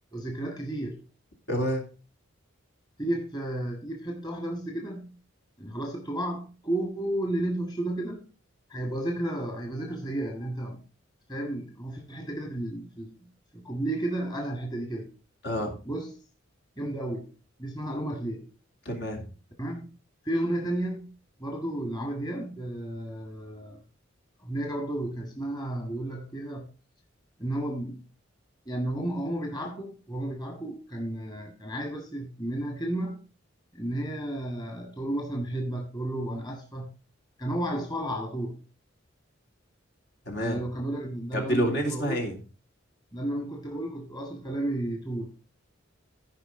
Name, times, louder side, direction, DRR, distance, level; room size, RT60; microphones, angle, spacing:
voice 1, 0.1-1.0 3.0-5.2 5.6-8.3 8.7-10.8 11.3-15.1 15.9-16.1 16.8-17.3 17.6-18.5 19.6-19.9 20.2-21.1 21.4-23.8 24.4-26.7 27.4-28.1 28.7-33.2 33.7-36.9 37.4-38.6 40.4-42.2 43.1-45.3, right 1 dB, 20° left, 1.8 m, -32 dB
voice 2, 1.5-1.8 15.4-15.8 18.8-19.2 40.3-40.6 41.3-42.4, equal, 65° left, 2.8 m, -28 dB
15.5 x 5.2 x 3.7 m
head